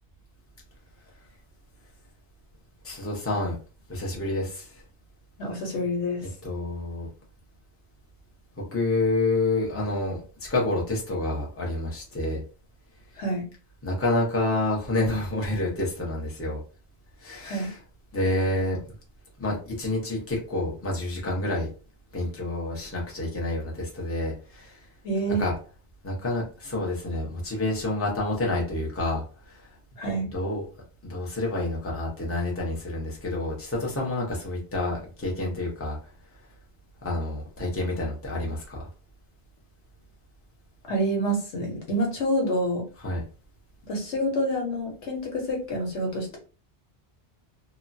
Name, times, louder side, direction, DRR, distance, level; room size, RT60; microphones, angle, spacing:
voice 1, 2.8-3.6 3.9-4.8 6.4-7.1 8.7-12.4 13.8-16.6 17.2-17.8 18.1-18.8 19.4-21.7 22.1-24.8 25.4-25.5 26.0-29.6 30.3-30.6 31.1-36.0 37.0-38.8 43.0-43.2, left 2 dB, 15° left, -3 dB, 0.7 m, -28 dB
voice 2, 5.4-6.3 13.2-13.4 17.4-17.7 25.0-25.4 30.0-30.3 40.9-42.9 43.9-46.4, equal, 90° left, 1 dB, 1.2 m, -27 dB
2.9 x 2.2 x 2.6 m, 0.36 s
omnidirectional pair, 1.1 m